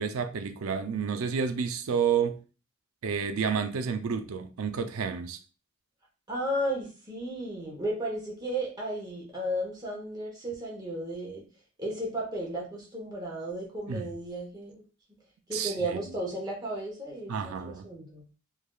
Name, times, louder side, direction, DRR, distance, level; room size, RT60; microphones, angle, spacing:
voice 1, 0.0-2.4 3.0-5.4 13.9-14.1 15.5-16.0 17.3-17.9, right 6 dB, 80° right, 0.4 m, -30 dB
voice 2, 6.3-11.4 11.8-14.8 15.5-18.2, right 1 dB, 20° right, 0.7 m, -34 dB
3.3 x 2.3 x 2.3 m
head